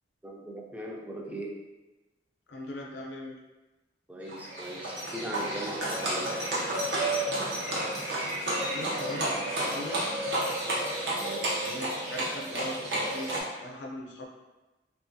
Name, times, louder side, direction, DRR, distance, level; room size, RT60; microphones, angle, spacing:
voice 1, 0.2-1.5 4.1-6.6 11.2-11.4, right 1 dB, 10° right, -1 dB, 0.3 m, -39 dB
voice 2, 2.5-3.3 8.7-9.3 9.6-10.0 11.6-14.3, left 1 dB, 75° left, -1 dB, 0.5 m, -39 dB
Livestock farm animals working animals, 4.3-13.4, right 1 dB, 75° right, 0.7 m, -31 dB
2.7 x 2.3 x 2.6 m, 1.1 s
head